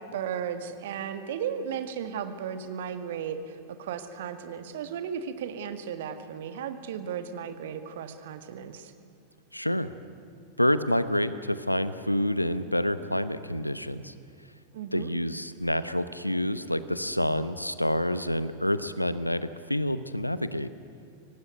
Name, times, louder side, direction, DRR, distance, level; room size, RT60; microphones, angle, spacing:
voice 1, 0.0-8.9 14.7-15.1, right 8 dB, 55° right, 9 dB, 1.7 m, -35 dB
voice 2, 9.5-9.9 10.6-14.1 14.9-20.7, left 1 dB, 90° left, 14 dB, 0.9 m, -28 dB
24.0 x 18.5 x 9.5 m, 2.4 s
figure-of-eight pair, 90°, 0 cm